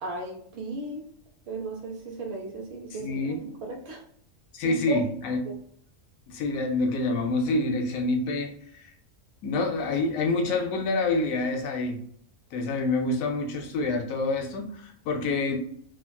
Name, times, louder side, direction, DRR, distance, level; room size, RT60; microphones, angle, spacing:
voice 1, 0.0-1.0 1.5-4.0 4.6-5.0, right 2 dB, 65° right, 0 dB, 0.7 m, -35 dB
voice 2, 3.0-3.4 4.5-5.4 6.3-8.9 9.4-12.0 12.5-15.6, left 2 dB, 85° left, 3 dB, 1.0 m, -27 dB
3.4 x 2.1 x 2.2 m, 0.64 s
omnidirectional pair, 1.4 m